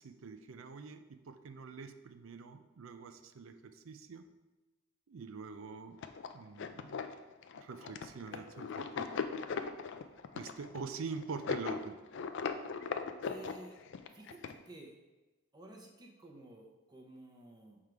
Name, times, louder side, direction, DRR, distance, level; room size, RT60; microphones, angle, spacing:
voice 1, 0.0-4.2 5.1-6.0 6.3-7.0 7.5-8.7 9.0-9.2 10.3-12.0, right 4 dB, 70° right, 9 dB, 0.5 m, -45 dB
sound 1, 6.0-14.5, left 5 dB, 60° left, 0.4 m, -39 dB
voice 2, 8.1-8.7 13.2-13.8 14.1-14.9 15.5-17.8, right 1 dB, 20° right, 1 dB, 0.8 m, -53 dB
6.5 x 3.7 x 4.6 m, 1.1 s
head